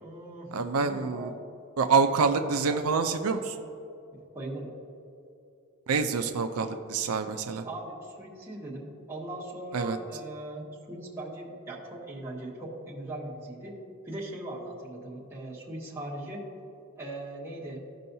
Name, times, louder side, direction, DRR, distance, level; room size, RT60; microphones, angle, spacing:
voice 1, 0.0-1.3 4.3-4.7 7.6-13.7 14.0-16.4 16.9-17.8, right 1 dB, 10° right, -6 dB, 1.6 m, -39 dB
voice 2, 0.5-1.3 1.8-3.5 5.9-7.6 9.7-10.0, right 5 dB, 80° right, 6 dB, 0.5 m, -26 dB
15.0 x 5.5 x 2.7 m, 2.7 s
head